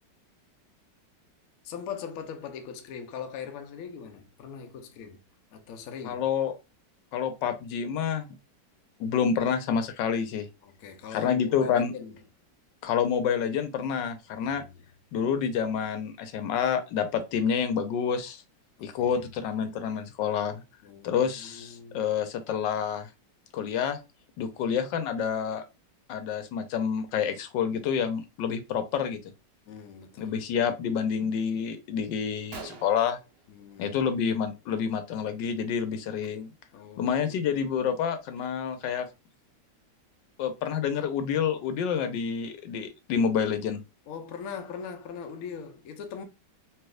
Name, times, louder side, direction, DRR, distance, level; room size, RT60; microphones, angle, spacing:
voice 1, 1.6-5.2 5.5-6.2 10.6-12.2 14.4-14.8 18.8-19.2 20.8-22.0 29.7-30.7 33.5-34.0 36.7-37.6 44.1-46.2, left 6 dB, 70° left, 0.9 m, -41 dB
voice 2, 6.0-6.6 7.1-8.3 9.0-10.5 11.1-11.9 12.8-14.6 15.1-18.4 18.8-20.6 21.0-23.1 23.5-24.0 24.4-25.6 26.1-29.2 30.2-33.2 33.8-36.5 37.0-39.1 40.4-43.8, left 7 dB, 85° left, 1.3 m, -28 dB
Gunshot gunfire, 32.5-34.1 34.4-34.8 35.1-35.3 36.1-36.3 36.8-36.9 37.3-38.9, right 4 dB, 85° right, 0.5 m, -48 dB
3.3 x 3.0 x 2.3 m
omnidirectional pair, 1.9 m